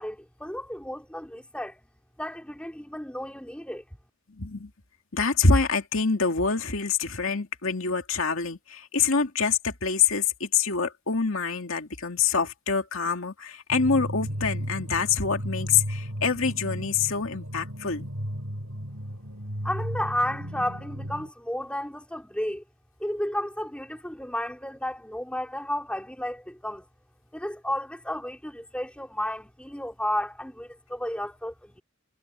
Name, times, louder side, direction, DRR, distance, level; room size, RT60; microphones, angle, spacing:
voice 1, 0.0-1.8 2.2-3.8 19.6-22.6 23.0-26.9 27.3-31.8, left 1 dB, 5° left, 3.5 m, -32 dB
voice 2, 4.4-4.7 5.1-18.1, left 5 dB, 70° left, 2.4 m, -26 dB
sound 1, 13.7-21.3, equal, 85° right, 7.4 m, -34 dB
head